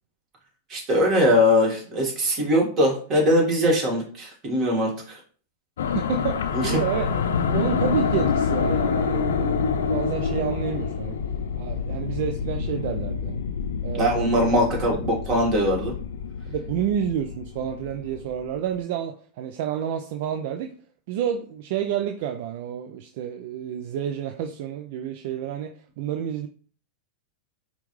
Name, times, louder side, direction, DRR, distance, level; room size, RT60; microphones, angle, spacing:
voice 1, 0.7-5.2 6.5-6.8 13.9-16.0, equal, 35° right, -1 dB, 1.8 m, -21 dB
sound 1, 5.8-18.4, left 6 dB, 80° left, 0.4 m, -27 dB
voice 2, 5.9-7.1 7.5-11.2 11.6-13.4 13.8-14.4 16.5-20.7 21.1-26.5, right 9 dB, 60° right, 6 dB, 0.4 m, -29 dB
5.1 x 2.4 x 3.1 m, 0.44 s
hypercardioid pair, 110°, 0 cm